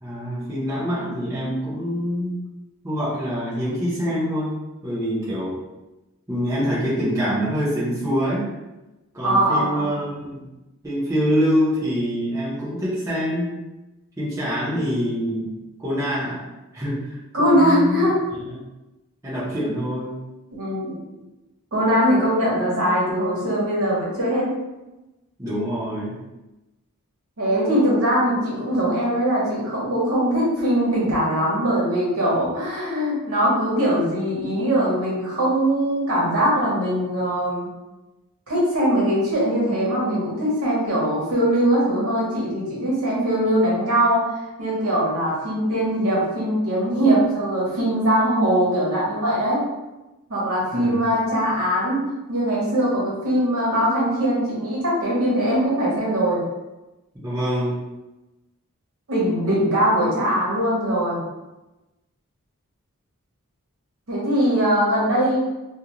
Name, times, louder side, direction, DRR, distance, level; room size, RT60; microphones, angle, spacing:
voice 1, 0.0-2.4 2.8-4.6 4.8-5.6 6.3-8.5 9.1-10.5 10.8-13.5 14.2-15.5 15.8-16.4 16.7-18.0 18.5-18.6 19.2-20.2 25.4-26.2 50.7-51.1 57.2-57.8, equal, 15° right, -10 dB, 0.7 m, -25 dB
voice 2, 9.2-9.9 17.3-18.2 20.5-21.0 21.7-24.5 27.4-37.7 38.5-44.3 44.6-49.6 50.3-52.0 52.3-56.4 59.1-61.2 64.1-65.4, equal, 70° right, -6 dB, 1.1 m, -21 dB
2.5 x 2.4 x 2.9 m, 1.0 s
head